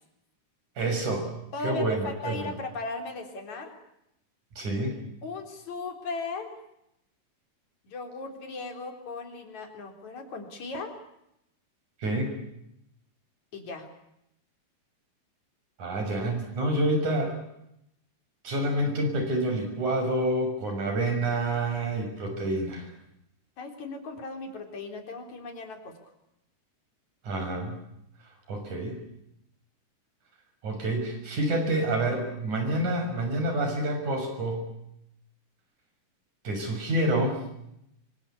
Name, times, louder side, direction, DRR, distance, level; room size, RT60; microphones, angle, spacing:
voice 1, 0.8-1.3 1.6-2.5 4.6-5.0 12.0-12.3 15.8-17.4 18.4-22.9 27.2-27.8 28.5-29.0 30.6-34.7 36.4-37.4, right 1 dB, 65° right, 4 dB, 7.8 m, -28 dB
voice 2, 1.5-3.7 5.2-6.6 7.9-10.9 13.5-13.9 23.6-26.0, left 3 dB, 60° left, 4 dB, 5.2 m, -37 dB
26.0 x 24.5 x 8.5 m, 0.81 s
omnidirectional pair, 3.7 m